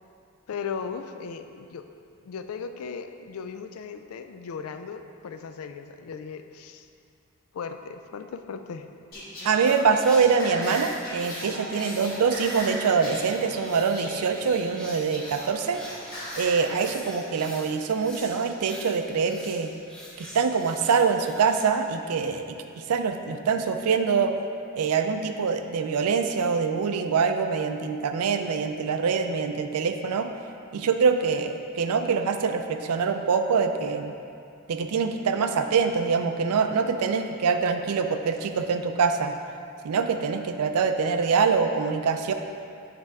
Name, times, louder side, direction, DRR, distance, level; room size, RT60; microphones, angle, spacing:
voice 1, 0.5-1.9 2.2-6.9 7.5-8.9, left 6 dB, 75° left, 8 dB, 0.3 m, -37 dB
Singing, 9.1-16.7, equal, 40° left, 1.2 m, -38 dB
voice 2, 9.4-15.8 16.4-19.7 20.2-22.6 22.9-24.3 24.8-30.3 30.7-34.1 34.7-39.3 39.8-42.3, right 5 dB, 90° right, 7 dB, 0.4 m, -24 dB
sound 1, 9.6-21.7, equal, 5° left, 0.6 m, -44 dB
9.0 x 3.4 x 3.5 m, 2.5 s
head